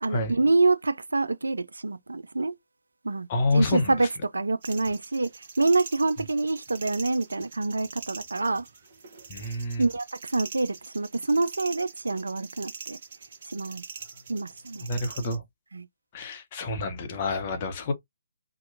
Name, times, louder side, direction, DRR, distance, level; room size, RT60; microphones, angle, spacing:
voice 1, 0.0-2.5 3.0-4.1 4.3-8.7 9.4-13.0 13.5-13.8 14.3-14.9 15.7-15.9, right 3 dB, 70° right, 0.3 m, -26 dB
voice 2, 3.3-3.9 9.3-9.9 14.8-15.4 16.1-17.9, left 2 dB, 35° left, 0.7 m, -28 dB
sound 1, 4.6-15.4, right 5 dB, 45° right, 0.9 m, -43 dB
2.8 x 2.2 x 2.5 m
figure-of-eight pair, 135°, 0 cm